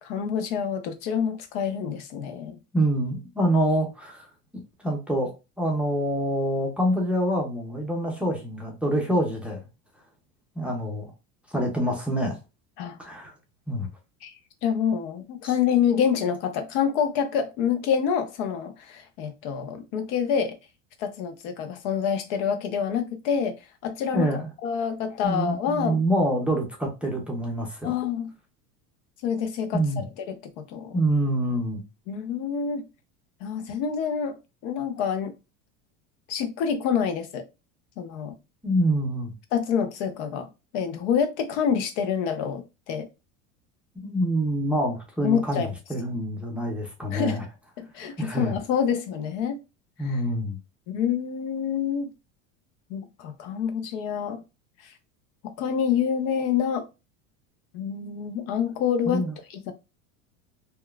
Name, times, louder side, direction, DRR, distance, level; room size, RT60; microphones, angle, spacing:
voice 1, 0.0-2.6 12.8-13.0 14.2-14.3 14.6-20.6 21.0-23.5 23.8-24.3 24.6-26.0 27.8-28.3 29.2-31.0 32.1-32.8 33.4-34.4 34.6-35.3 36.3-37.4 38.0-38.4 39.5-40.5 40.7-43.1 45.2-45.7 47.1-47.4 47.8-49.6 50.1-50.2 50.9-52.1 52.9-54.4 54.8-54.9 55.4-56.8 57.7-59.2 59.5-59.7, left 7 dB, 65° left, 0.7 m, -27 dB
voice 2, 2.7-4.3 4.5-9.7 10.6-11.1 11.5-12.4 13.0-13.3 13.7-13.9 24.1-24.4 25.2-27.9 29.7-30.0 30.9-31.8 38.6-39.3 44.0-47.4 48.2-48.6 50.0-50.6 59.1-59.4, right 1 dB, 5° right, 0.5 m, -26 dB
2.9 x 2.2 x 2.3 m
supercardioid pair, 125°, 40 cm